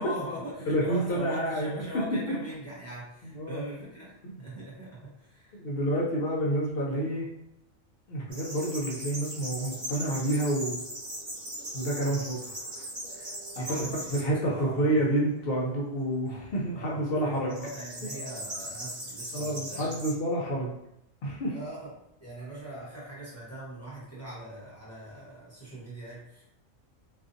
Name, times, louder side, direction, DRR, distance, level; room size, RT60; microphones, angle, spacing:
voice 1, 0.0-5.6 12.0-12.3 13.5-15.1 16.7-20.0 21.5-21.9 22.2-26.4, right 1 dB, 15° left, -8 dB, 0.6 m, -41 dB
voice 2, 0.7-1.8 2.3-2.4 3.2-3.6 4.2-4.3 5.5-7.3 8.1-10.8 11.7-12.4 13.2-13.3 13.6-13.7 14.1-17.6 19.3-20.7 21.2-21.6, right 1 dB, 60° left, -2 dB, 0.6 m, -29 dB
sound 1, 8.3-14.2 14.8-15.3 17.5-20.1, right 1 dB, 35° right, 1.1 m, -39 dB
2.5 x 2.4 x 2.5 m, 0.81 s
omnidirectional pair, 1.4 m